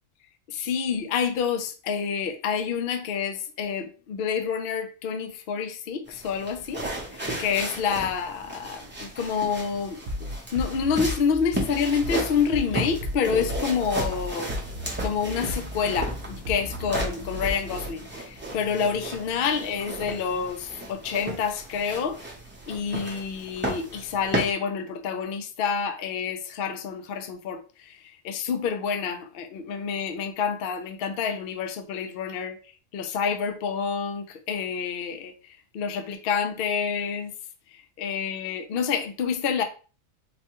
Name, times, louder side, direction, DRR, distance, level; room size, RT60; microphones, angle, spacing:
voice 1, 0.5-6.8 7.1-10.0 10.5-14.5 15.0-22.2 22.7-32.6 32.9-37.3 38.0-39.6, left 6 dB, 60° left, 0.6 m, -28 dB
sound 1, 6.1-24.5, right 1 dB, 10° right, 0.6 m, -35 dB
sound 2, 10.1-17.9, left 1 dB, 55° right, 0.7 m, -34 dB
4.2 x 2.2 x 2.9 m
omnidirectional pair, 1.4 m